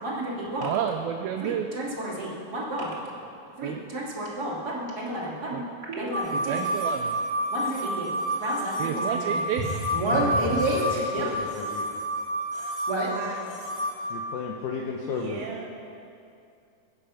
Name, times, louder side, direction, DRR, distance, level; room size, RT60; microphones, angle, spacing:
voice 1, 0.0-0.7 1.4-3.0 3.6-5.6 5.9-6.6 7.5-8.1 8.4-11.5 12.9-13.1, right 1 dB, 25° right, -5 dB, 2.5 m, -30 dB
voice 2, 0.6-1.7 3.6-3.8 5.5-5.6 6.3-7.2 8.8-9.7, right 9 dB, 80° right, 5 dB, 2.2 m, -30 dB
sound 1, 6.1-14.0, equal, 15° left, 0.9 m, -29 dB
voice 3, 10.1-10.9 11.2-11.9 14.1-15.4, left 5 dB, 75° left, 0 dB, 2.0 m, -34 dB
voice 4, 12.9-13.6 15.1-15.7, right 4 dB, 65° right, -1 dB, 2.8 m, -38 dB
20.5 x 8.4 x 5.8 m, 2.6 s
omnidirectional pair, 4.8 m